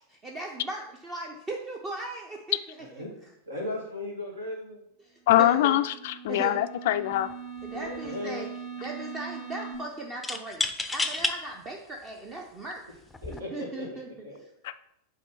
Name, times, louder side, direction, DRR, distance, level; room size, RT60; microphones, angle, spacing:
voice 1, 0.1-2.6 2.9-3.3 5.0-5.8 6.3-6.6 7.6-8.5 8.8-13.0 13.3-14.5, right 2 dB, 25° right, 1 dB, 0.8 m, -38 dB
voice 2, 3.5-4.8 7.7-8.4 13.2-13.5 13.8-13.9 14.2-14.4, left 2 dB, 75° right, -1 dB, 2.2 m, -36 dB
voice 3, 5.3-7.3 14.6-14.7, left 13 dB, 55° left, 13 dB, 0.3 m, -23 dB
sound 1, 5.4-9.8, right 7 dB, 40° right, 1.0 m, -41 dB
sound 2, 7.1-7.3 7.7-8.3 10.2-11.4 12.1-12.2 13.1-13.4, left 2 dB, 5° left, 0.5 m, -30 dB
8.1 x 3.7 x 4.5 m, 0.77 s
figure-of-eight pair, 90°, 0 cm